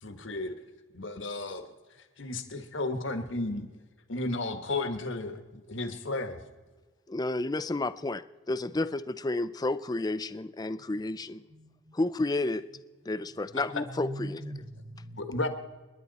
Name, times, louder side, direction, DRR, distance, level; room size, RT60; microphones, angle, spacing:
voice 1, 0.0-0.6 0.9-1.6 2.2-3.7 4.1-6.4 13.7-13.8 15.1-15.5, left 2 dB, 65° left, 8 dB, 1.5 m, -33 dB
voice 2, 7.1-11.4 11.9-12.6 13.1-14.4, left 2 dB, 20° left, 14 dB, 0.4 m, -31 dB
voice 3, 11.5-12.0 13.7-15.5, right 1 dB, 60° right, -3 dB, 4.3 m, -42 dB
29.0 x 10.5 x 4.1 m, 1.3 s
head